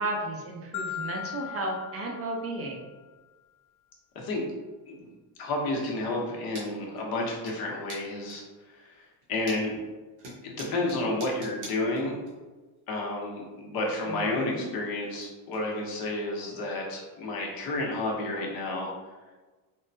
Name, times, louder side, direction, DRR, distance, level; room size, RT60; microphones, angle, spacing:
voice 1, 0.0-2.8 14.0-14.7, right 2 dB, 30° right, 0 dB, 0.6 m, -34 dB
Marimba xylophone, 0.7-2.9, left 9 dB, 85° left, 0.6 m, -38 dB
voice 2, 4.1-4.5 4.9-5.1 5.4-8.4 8.7-9.8 10.4-12.2 12.9-18.9, left 2 dB, 55° left, -2 dB, 1.0 m, -31 dB
sound 1, 6.5-6.7 7.0-7.5 7.9-8.5 9.0-9.8 10.2-12.3 12.6-12.7 13.9-14.0 14.3-15.2 15.5-15.6 16.0-16.1 16.6-16.7 17.2-17.3 18.5-18.6, right 1 dB, 85° right, 1.3 m, -44 dB
3.6 x 2.1 x 2.7 m, 1.3 s
cardioid pair, 120°, 45 cm